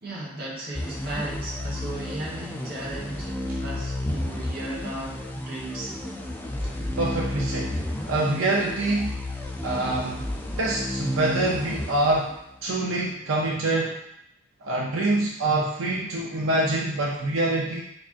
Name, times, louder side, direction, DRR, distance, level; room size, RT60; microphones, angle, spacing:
voice 1, 0.0-6.0, right 1 dB, 50° right, -5 dB, 1.0 m, -36 dB
sound 1, 0.7-12.6, left 1 dB, 10° left, 0.3 m, -32 dB
voice 2, 6.9-7.8 8.1-9.2 9.6-10.3 10.6-12.3 12.6-13.9 14.6-17.8, right 2 dB, 85° right, -3 dB, 0.6 m, -25 dB
3.7 x 3.3 x 2.5 m, 0.78 s
head